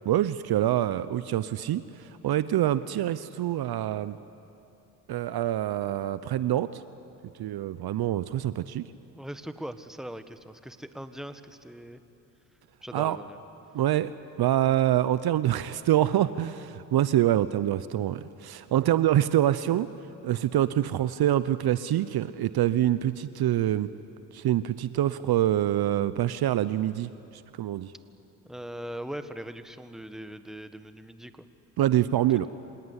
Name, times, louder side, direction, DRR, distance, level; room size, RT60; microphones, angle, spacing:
voice 1, 0.0-4.2 5.1-6.8 7.4-8.8 12.9-13.2 13.7-14.1 14.4-19.9 20.2-23.9 24.3-27.1 27.6-27.9 31.8-32.5, right 12 dB, 55° right, 15 dB, 0.8 m, -25 dB
voice 2, 9.1-12.0 12.8-13.4 28.5-31.4, right 1 dB, ahead, 9 dB, 1.5 m, -40 dB
26.0 x 18.0 x 9.9 m, 2.8 s
supercardioid pair, 60°, 44 cm